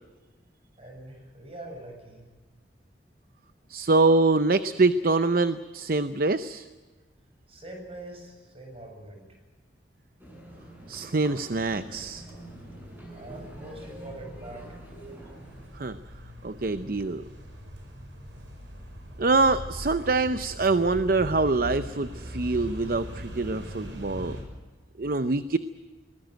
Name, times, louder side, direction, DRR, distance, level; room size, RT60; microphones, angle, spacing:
voice 1, 0.8-2.2 7.5-9.4 13.1-14.8, right 1 dB, 30° right, 3 dB, 7.2 m, -43 dB
voice 2, 3.7-6.7 10.9-12.2 15.7-16.0 16.4-17.2 19.2-24.4 25.0-25.6, right 3 dB, 50° right, 11 dB, 0.7 m, -24 dB
sound 1, 10.2-15.7, right 1 dB, 10° right, 8.0 m, -46 dB
sound 2, 11.5-24.4, equal, 90° right, 6.7 m, -41 dB
22.0 x 20.5 x 9.2 m, 1.3 s
head